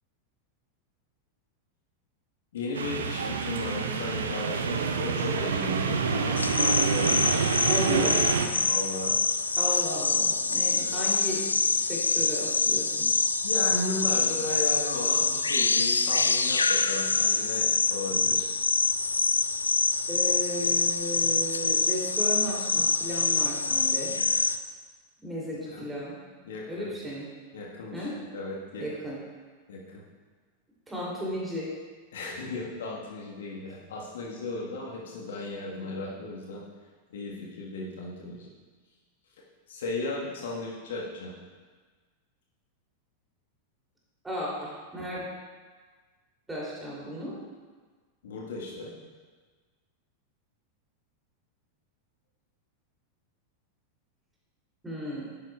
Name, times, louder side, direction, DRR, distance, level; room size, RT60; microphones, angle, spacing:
voice 1, 2.5-7.6 8.7-9.2 10.8-11.0 13.4-18.5 25.7-25.9 26.4-26.9 27.5-28.8 29.7-30.0 32.1-36.6 37.1-38.5 39.7-41.3 48.2-48.9, left 2 dB, 60° left, -2 dB, 1.3 m, -35 dB
sound 1, 2.7-8.5, right 5 dB, 65° right, 0.6 m, -27 dB
sound 2, 6.4-24.6, left 4 dB, 75° left, 0.3 m, -25 dB
voice 2, 7.7-8.5 9.6-11.4 11.7-13.0 20.1-24.1 25.2-26.1 26.7-27.3 27.9-28.1 28.8-29.2 30.9-31.7 44.2-45.3 46.5-47.4 54.8-55.2, left 1 dB, 10° right, -5 dB, 2.8 m, -34 dB
10.5 x 8.9 x 2.3 m, 1.5 s
figure-of-eight pair, 90°, 0 cm